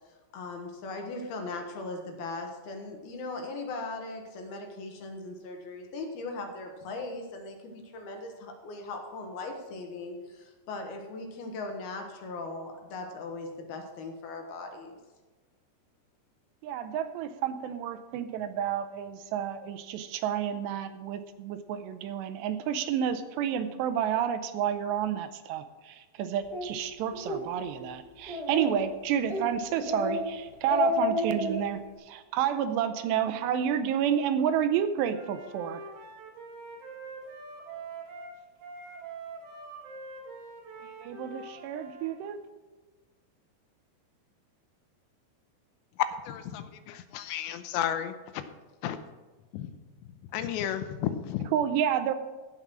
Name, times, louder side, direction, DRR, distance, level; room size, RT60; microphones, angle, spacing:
voice 1, 0.3-15.0, left 3 dB, 65° left, 3 dB, 3.0 m, -39 dB
voice 2, 16.6-31.8 32.1-35.8 41.0-42.4 51.5-52.1, right 9 dB, 80° right, 10 dB, 2.8 m, -30 dB
Speech, 26.5-26.7 27.1-27.4 27.8-27.9 28.3-28.9 29.3-29.5 29.8-30.2 30.5-31.6, left 2 dB, 10° left, 3.1 m, -30 dB
Wind instrument woodwind instrument, 35.1-42.1, right 3 dB, 65° right, 3.3 m, -44 dB
voice 3, 46.3-46.6 47.1-48.1 48.8-49.0 49.5-49.7 50.3-51.5, left 10 dB, 85° left, 10 dB, 2.9 m, -32 dB
15.5 x 5.9 x 6.1 m, 1.2 s
omnidirectional pair, 5.1 m